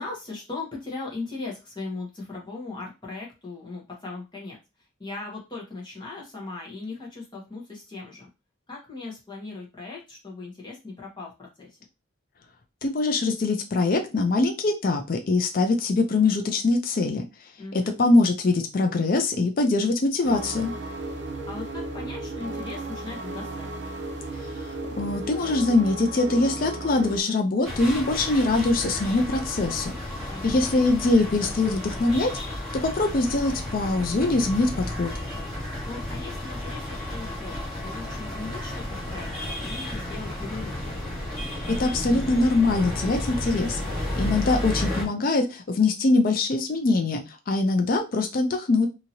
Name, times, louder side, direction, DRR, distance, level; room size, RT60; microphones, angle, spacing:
voice 1, 0.0-4.6 5.0-8.3 8.7-11.8 17.6-17.9 21.5-23.7 30.3-30.9 35.9-40.8 44.1-44.9, left 3 dB, 20° left, -2 dB, 1.0 m, -38 dB
voice 2, 12.8-17.3 17.7-20.7 25.0-29.9 30.4-32.3 32.8-35.1 41.5-43.8 44.2-48.9, left 3 dB, 45° left, 5 dB, 0.4 m, -23 dB
sound 1, 20.2-27.2, right 2 dB, 55° right, 0.5 m, -34 dB
sound 2, 27.6-45.0, left 1 dB, ahead, 1.5 m, -32 dB
2.7 x 2.7 x 2.8 m, 0.27 s
head